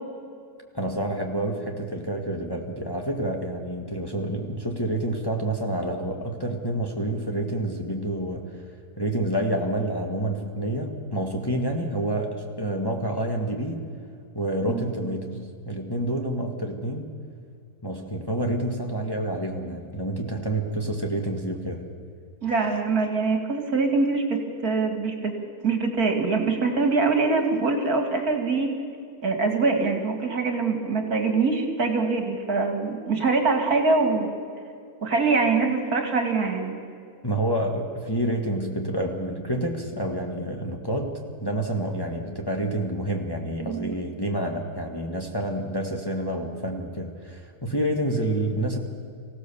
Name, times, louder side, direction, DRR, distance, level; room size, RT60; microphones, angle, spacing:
voice 1, 0.7-8.4 9.0-13.8 14.3-15.4 15.7-17.2 17.8-21.8 37.2-48.8, right 1 dB, 15° left, 1 dB, 1.8 m, -28 dB
voice 2, 14.7-15.1 22.4-25.4 25.6-28.7 29.2-34.3 35.0-36.8 43.6-43.9, right 4 dB, 70° right, 4 dB, 2.7 m, -24 dB
24.5 x 16.5 x 7.1 m, 2.4 s
omnidirectional pair, 1.7 m